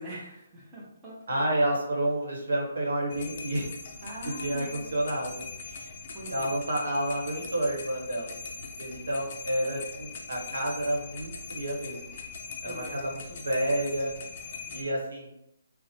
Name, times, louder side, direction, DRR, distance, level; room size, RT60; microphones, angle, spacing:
voice 1, 0.0-1.2 4.0-5.0 5.6-6.5 12.7-13.0 14.5-14.6, right 1 dB, 15° right, -7 dB, 0.7 m, -43 dB
voice 2, 1.3-3.7 4.2-5.5 6.3-8.4 8.8-12.1 12.6-14.1 14.7-15.3, right 1 dB, 85° right, -1 dB, 0.9 m, -30 dB
sound 1, 3.1-14.8, left 5 dB, 40° left, 0.4 m, -41 dB
2.6 x 2.0 x 2.9 m, 0.79 s
hypercardioid pair, 160°, 0 cm